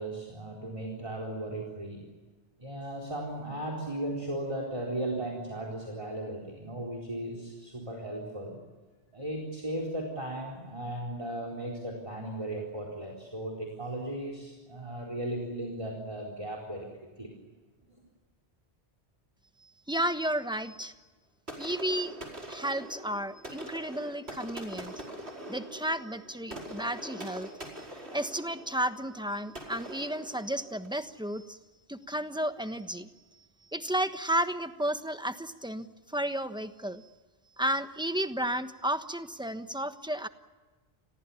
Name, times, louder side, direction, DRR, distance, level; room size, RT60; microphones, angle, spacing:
voice 1, 0.0-2.0 2.6-8.6 9.1-16.9 17.2-17.3, right 1 dB, 30° right, 1 dB, 4.3 m, -36 dB
voice 2, 19.6-20.9 21.6-22.1 22.5-25.1 25.5-31.6 31.9-33.1 33.7-37.1 37.6-40.3, right 1 dB, 5° right, 9 dB, 1.2 m, -33 dB
sound 1, 21.5-31.1, right 1 dB, 75° right, 5.3 m, -43 dB
30.0 x 22.0 x 7.2 m, 1.3 s
omnidirectional pair, 1.1 m